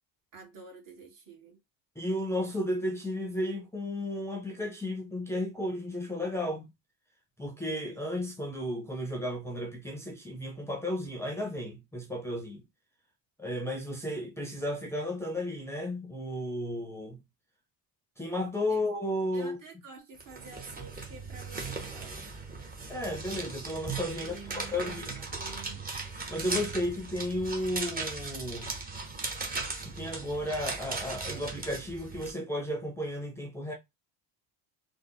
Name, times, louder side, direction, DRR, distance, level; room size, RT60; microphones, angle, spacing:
voice 1, 0.3-1.6 18.7-18.8 19.3-22.3 24.2-25.9, right 4 dB, 45° right, 1.7 m, -49 dB
voice 2, 2.0-6.7 7.4-12.6 13.4-17.2 18.2-19.6 22.9-25.1 26.3-28.8 29.8-33.7, left 1 dB, 5° left, 0.7 m, -33 dB
sound 1, 20.2-32.3, right 3 dB, 20° right, 0.9 m, -38 dB
3.4 x 2.1 x 3.9 m
cardioid pair, 135°, 44 cm